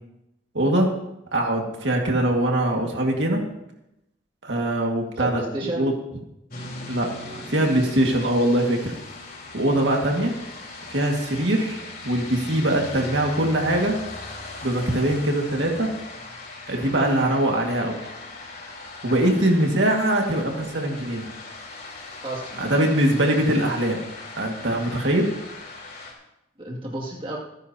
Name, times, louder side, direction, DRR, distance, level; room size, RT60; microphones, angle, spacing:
voice 1, 0.5-0.9 1.3-3.4 4.4-5.4 5.8-5.9 6.9-8.9 9.5-10.3 10.9-14.0 14.6-15.9 16.7-18.0 19.0-21.3 22.6-24.0 24.4-25.3, right 1 dB, 70° right, 0 dB, 2.1 m, -22 dB
voice 2, 5.1-5.9 22.2-22.6 26.6-27.4, right 1 dB, 25° right, -3 dB, 2.5 m, -31 dB
sound 1, 6.5-26.1, left 2 dB, 50° left, 3.8 m, -39 dB
27.0 x 10.0 x 2.9 m, 0.87 s
head